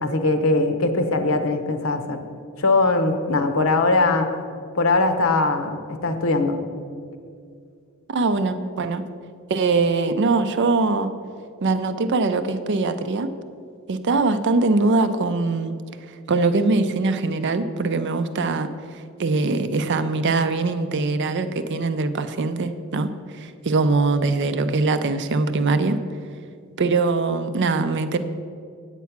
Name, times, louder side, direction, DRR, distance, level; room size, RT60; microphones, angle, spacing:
voice 1, 0.0-2.2 2.6-4.3 4.7-6.6, left 2 dB, 65° left, 7 dB, 0.8 m, -21 dB
voice 2, 8.1-9.0 9.5-11.1 11.6-13.3 13.9-15.8 16.3-18.7 19.2-26.0 26.8-28.2, right 3 dB, 55° right, 10 dB, 0.5 m, -22 dB
8.4 x 8.2 x 5.9 m, 2.3 s
head